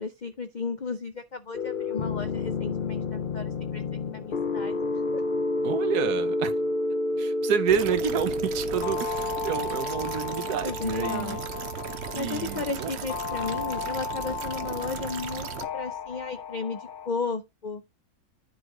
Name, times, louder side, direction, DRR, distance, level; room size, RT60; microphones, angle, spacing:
voice 1, 0.0-4.8 5.1-5.2 10.6-11.4 12.1-17.8, left 4 dB, 75° left, 0.4 m, -34 dB
sound 1, 1.5-17.1, left 3 dB, 45° left, 0.7 m, -31 dB
voice 2, 5.6-6.5 7.2-11.4 12.1-12.9, right 8 dB, 80° right, 1.4 m, -29 dB
sound 2, 7.7-15.7, right 8 dB, 55° right, 0.9 m, -37 dB
10.0 x 4.7 x 3.7 m
omnidirectional pair, 1.6 m